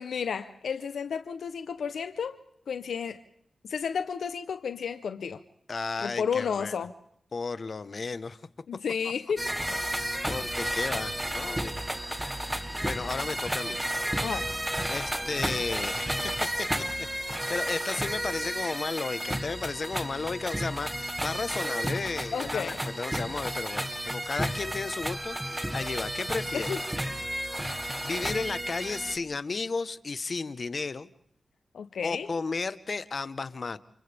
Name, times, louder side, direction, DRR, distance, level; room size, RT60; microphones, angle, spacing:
voice 1, 0.0-2.4 2.7-3.2 3.6-5.4 6.0-6.9 8.7-9.5 14.2-14.5 22.3-22.9 26.5-26.8 31.7-32.3, left 6 dB, 90° left, 10 dB, 0.8 m, -32 dB
voice 2, 5.7-6.7 7.3-8.4 9.9-11.8 12.4-13.8 14.8-16.7 17.0-26.7 27.7-31.1 32.0-33.8, left 4 dB, 60° left, 13 dB, 1.1 m, -34 dB
sound 1, 9.4-29.2, right 1 dB, 15° right, 2.0 m, -32 dB
Keyboard (musical), 25.1-27.5, right 4 dB, 85° right, 4.4 m, -50 dB
30.0 x 29.0 x 3.5 m, 0.70 s
cardioid pair, 50°, 0 cm